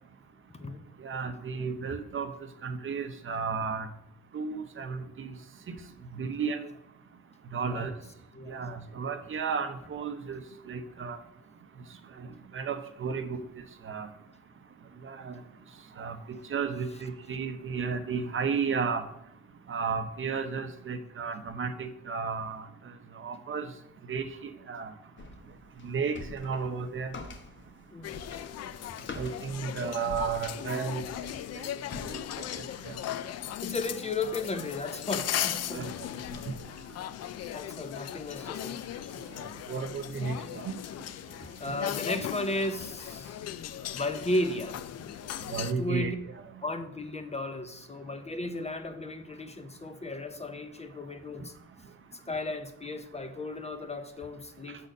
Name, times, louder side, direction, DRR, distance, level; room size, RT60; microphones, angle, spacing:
voice 1, 1.0-2.3 2.6-3.9 4.3-5.3 6.2-6.7 7.5-7.9 8.5-10.4 10.7-11.2 12.5-13.4 13.8-14.1 15.0-15.4 16.0-19.0 19.7-22.6 23.2-23.7 24.1-24.9 25.8-27.1 29.2-31.0 32.0-32.2 32.6-32.7 35.7-35.9 36.3-36.4 39.7-40.8 45.5-46.1, right 5 dB, 40° right, 9 dB, 0.7 m, -33 dB
sound 1, 25.2-32.5, left 3 dB, 40° left, 1.0 m, -45 dB
sound 2, 28.0-45.7, left 11 dB, 55° left, 0.5 m, -38 dB
voice 2, 33.6-35.9 37.5-38.8 41.6-43.4 43.9-44.8 45.8-46.2 46.6-51.5 52.1-54.9, left 2 dB, 20° left, 8 dB, 0.7 m, -34 dB
6.3 x 4.1 x 6.4 m, 0.79 s
cardioid pair, 90°, 30 cm